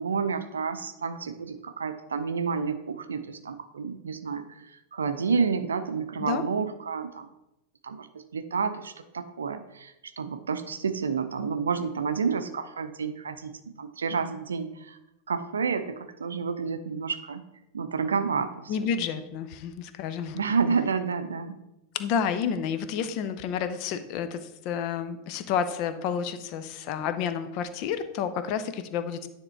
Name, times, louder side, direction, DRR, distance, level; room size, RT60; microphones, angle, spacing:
voice 1, 0.0-7.3 7.8-8.1 8.3-15.0 15.3-17.4 17.7-18.7 20.3-21.6, right 5 dB, 70° right, 9 dB, 0.6 m, -30 dB
voice 2, 18.7-20.4 21.9-29.3, left 7 dB, 45° left, 10 dB, 0.6 m, -30 dB
9.8 x 3.6 x 4.5 m, 0.92 s
figure-of-eight pair, 90°, 0 cm